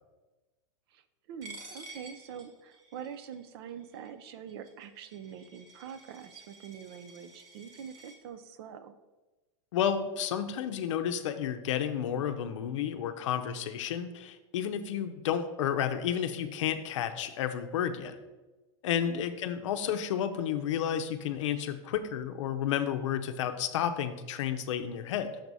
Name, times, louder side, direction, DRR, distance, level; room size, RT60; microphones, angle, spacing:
voice 1, 1.3-9.0 18.9-19.2, right 8 dB, 50° right, 12 dB, 0.5 m, -44 dB
Coin (dropping), 1.4-8.2, right 2 dB, 20° right, 0.9 m, -51 dB
voice 2, 9.7-18.2 18.8-25.4, left 9 dB, 70° left, 8 dB, 0.6 m, -31 dB
6.5 x 4.7 x 4.0 m, 1.2 s
supercardioid pair, 170°, 16 cm